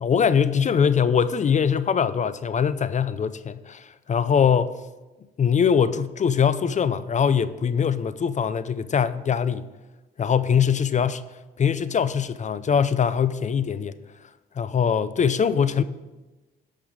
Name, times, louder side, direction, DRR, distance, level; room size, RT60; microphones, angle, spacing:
voice 1, 0.0-4.8 5.4-9.7 10.2-11.2 11.6-13.9 14.6-15.8, left 7 dB, 40° left, 0.5 m, -22 dB
13.0 x 5.6 x 4.8 m
cardioid pair, 90°, 20 cm